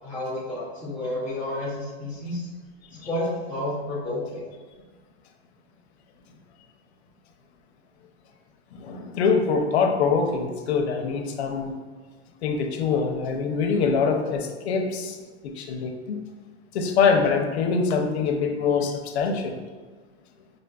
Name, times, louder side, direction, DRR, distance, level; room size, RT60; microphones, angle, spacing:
voice 1, 0.0-2.4 3.0-4.4, left 1 dB, 5° right, -11 dB, 0.5 m, -30 dB
voice 2, 8.7-11.7 12.4-15.2 15.4-16.2 16.7-19.6, left 5 dB, 85° left, 4 dB, 0.6 m, -24 dB
5.0 x 2.5 x 2.2 m, 1.4 s
supercardioid pair, 175°, 32 cm